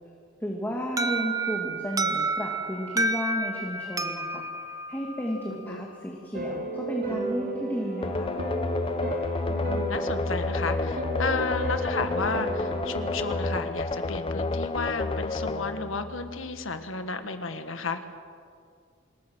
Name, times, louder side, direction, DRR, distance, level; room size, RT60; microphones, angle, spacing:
voice 1, 0.4-4.5 4.9-8.3, equal, 10° left, -2 dB, 2.4 m, -33 dB
Alarm, 1.0-5.8, right 2 dB, 20° right, 1.1 m, -30 dB
voice 2, 5.5-5.8 9.5-18.0, left 4 dB, 85° left, 8 dB, 1.7 m, -33 dB
sound 1, 6.3-13.6, right 1 dB, 50° right, 3.0 m, -34 dB
sound 2, 8.0-16.7, left 2 dB, 25° left, 0.6 m, -30 dB
26.5 x 21.0 x 6.3 m, 2.3 s
head